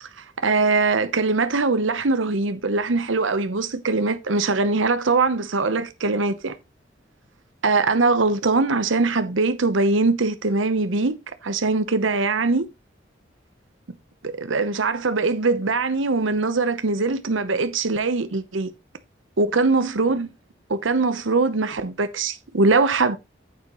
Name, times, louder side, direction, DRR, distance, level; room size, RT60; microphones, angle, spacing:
voice 1, 0.0-6.5 7.6-12.7 14.2-18.7 19.4-20.3 20.7-23.2, right 3 dB, 90° right, 0.9 m, -22 dB
9.4 x 8.7 x 3.0 m
head